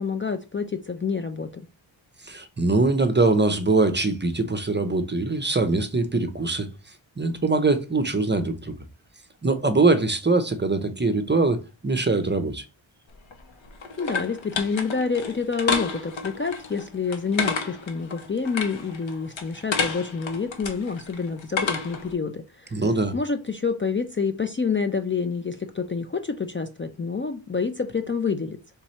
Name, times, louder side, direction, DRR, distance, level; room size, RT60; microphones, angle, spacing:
voice 1, 0.0-1.6 14.0-22.8 23.1-28.6, left 5 dB, 25° left, 0.4 m, -28 dB
voice 2, 2.2-6.7 7.2-8.7 9.4-12.6 22.7-23.1, right 3 dB, 25° right, 0.6 m, -22 dB
sound 1, 13.1-22.1, left 5 dB, 70° left, 0.9 m, -31 dB
3.5 x 3.0 x 4.2 m
wide cardioid pair, 70°, 48 cm